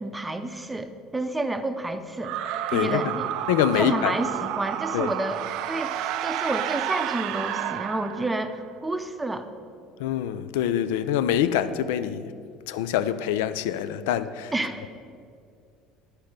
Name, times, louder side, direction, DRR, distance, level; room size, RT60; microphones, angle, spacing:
voice 1, 0.0-2.3 2.7-3.3 3.7-5.4 5.7-6.0 6.2-9.5 14.5-14.9, right 2 dB, 10° right, 0.6 m, -29 dB
sound 1, 2.2-8.6, right 12 dB, 65° right, 0.4 m, -31 dB
voice 2, 2.7-3.2 3.5-4.1 4.9-5.1 10.0-12.3 12.7-14.5, left 10 dB, 90° left, 0.4 m, -25 dB
11.0 x 4.4 x 6.5 m
supercardioid pair, 110°, 0 cm